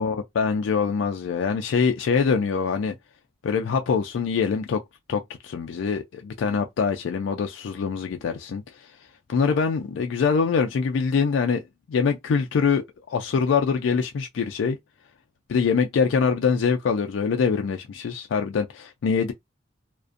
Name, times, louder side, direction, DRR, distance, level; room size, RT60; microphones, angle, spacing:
voice 1, 0.0-2.9 3.4-4.8 5.1-8.9 9.3-14.8 15.5-19.3, left 5 dB, 80° left, 0.3 m, -24 dB
2.5 x 2.1 x 2.4 m
head